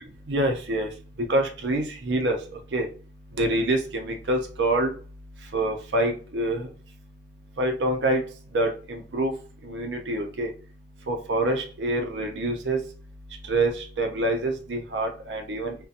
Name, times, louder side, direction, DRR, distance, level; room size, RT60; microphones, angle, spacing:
voice 1, 0.3-0.9 1.3-2.4 2.7-2.9 3.4-4.9 5.5-6.7 7.6-8.2 8.5-9.3 9.6-10.5 11.1-12.8 13.5-15.7, right 1 dB, 80° right, 3 dB, 0.5 m, -26 dB
2.6 x 2.1 x 2.4 m, 0.39 s
head